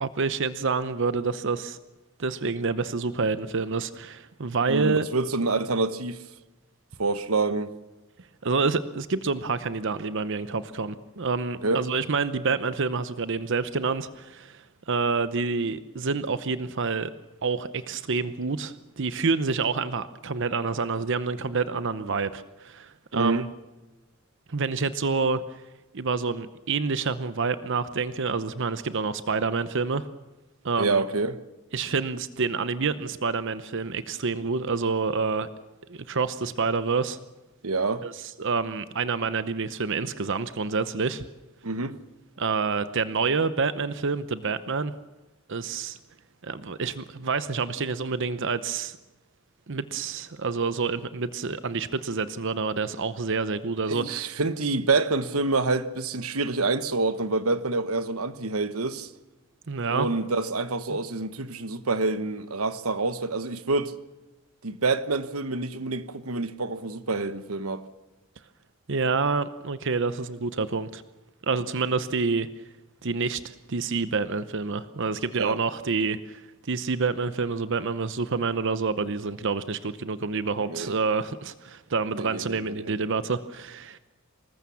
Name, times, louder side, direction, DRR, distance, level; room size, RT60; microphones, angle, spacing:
voice 1, 0.0-1.8 2.2-5.0 8.4-17.1 17.4-23.4 24.5-25.4 25.9-30.1 30.6-31.0 31.7-35.5 35.9-37.2 38.0-41.2 42.4-44.9 45.5-46.0 46.4-49.0 49.7-54.4 59.7-60.1 68.9-71.0 71.4-72.5 73.0-84.0, right 4 dB, 60° right, 0.8 m, -28 dB
voice 2, 4.7-6.2 7.0-7.7 11.6-11.8 23.1-23.5 30.8-31.4 37.6-38.0 41.6-42.0 53.9-59.1 59.9-63.9 64.6-67.8 75.4-75.6 80.6-81.0 82.2-82.9, right 3 dB, 80° right, 1.2 m, -27 dB
25.0 x 20.0 x 7.1 m
head